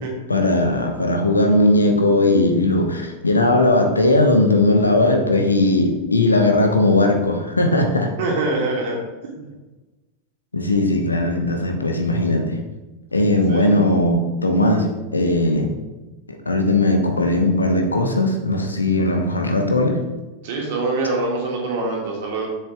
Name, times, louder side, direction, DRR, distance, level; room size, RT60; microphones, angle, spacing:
voice 1, 0.3-8.1 10.5-12.6 13.1-15.7 16.4-20.0, left 2 dB, 80° left, 3 dB, 1.1 m, -18 dB
voice 2, 8.2-9.0 9.3-9.5 13.5-13.8 20.4-22.5, right 2 dB, 55° right, -1 dB, 2.4 m, -24 dB
7.2 x 7.0 x 3.6 m, 1.1 s
figure-of-eight pair, 90°, 0 cm